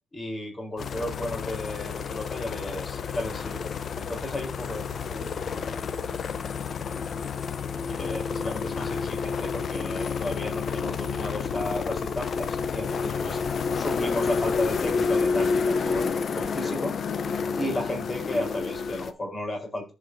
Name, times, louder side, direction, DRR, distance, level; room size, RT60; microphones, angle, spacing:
voice 1, 0.1-3.7 4.0-5.8 7.9-13.4 13.7-17.0 17.6-19.9, left 1 dB, 25° left, 2 dB, 4.1 m, -34 dB
sound 1, 0.8-19.1, left 5 dB, 50° left, 0.8 m, -29 dB
15.0 x 5.2 x 2.7 m, 0.28 s
cardioid pair, 90°, 0 cm